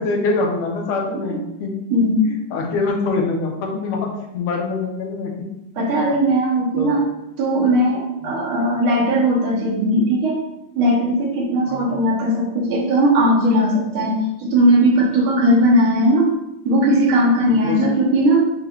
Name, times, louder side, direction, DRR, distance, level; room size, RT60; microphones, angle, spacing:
voice 1, 0.0-1.8 2.2-5.5 6.7-7.0 8.2-8.4 11.7-11.9 17.5-17.8, left 3 dB, 85° left, 0 dB, 1.7 m, -24 dB
voice 2, 1.9-2.3 5.8-7.0 7.4-10.4 10.8-16.3 16.7-18.5, equal, 90° right, -3 dB, 1.9 m, -18 dB
6.2 x 3.0 x 2.3 m, 0.90 s
omnidirectional pair, 2.3 m